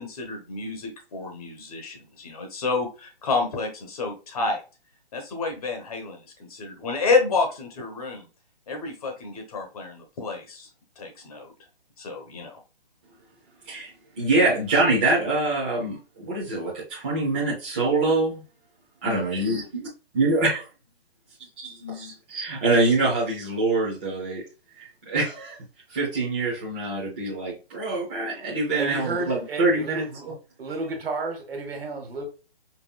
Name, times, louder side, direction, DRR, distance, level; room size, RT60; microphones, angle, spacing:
voice 1, 0.0-4.6 5.1-8.2 8.7-10.7 11.0-11.5 12.0-12.6, left 4 dB, 40° left, 1.1 m, -29 dB
voice 2, 13.7-18.4 19.0-19.9 20.1-20.6 21.6-24.4 24.8-25.6 25.9-30.2, right 2 dB, 10° right, 0.5 m, -25 dB
voice 3, 28.7-30.3 30.6-32.3, right 3 dB, 70° right, 1.5 m, -32 dB
5.4 x 2.6 x 2.2 m
hypercardioid pair, 165°, 31 cm